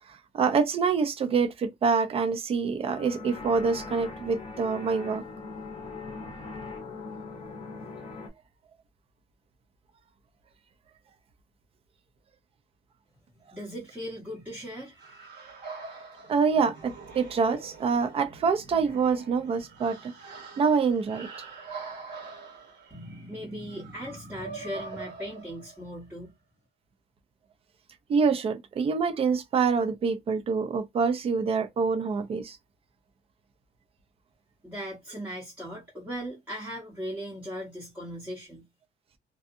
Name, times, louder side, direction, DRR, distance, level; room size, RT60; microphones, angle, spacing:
voice 1, 0.1-5.2 16.3-20.1 20.6-21.3 28.1-32.6, right 5 dB, 35° right, 0.5 m, -26 dB
sound 1, 2.9-8.3, left 3 dB, 30° left, 0.7 m, -40 dB
voice 2, 13.5-15.3 22.9-26.3 34.6-38.6, equal, 10° right, 0.8 m, -38 dB
sound 2, 15.0-26.0, right 4 dB, 80° right, 1.6 m, -44 dB
2.6 x 2.3 x 2.4 m
cardioid pair, 175°, 18 cm